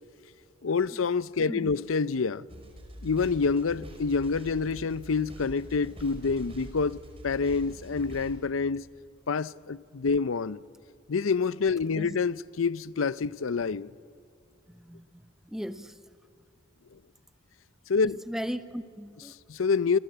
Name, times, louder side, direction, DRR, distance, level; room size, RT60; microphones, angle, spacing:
voice 1, 0.6-2.4 3.0-7.0 7.2-8.8 9.3-10.6 11.1-13.9 17.9-18.2 19.5-20.0, left 5 dB, 85° left, 0.6 m, -27 dB
voice 2, 1.5-1.8 11.9-12.2 13.7-13.8 14.7-15.1 15.5-16.0 18.0-19.3, equal, ahead, 0.9 m, -37 dB
sound 1, 2.5-8.3, equal, 30° right, 4.9 m, -45 dB
27.0 x 27.0 x 8.0 m
head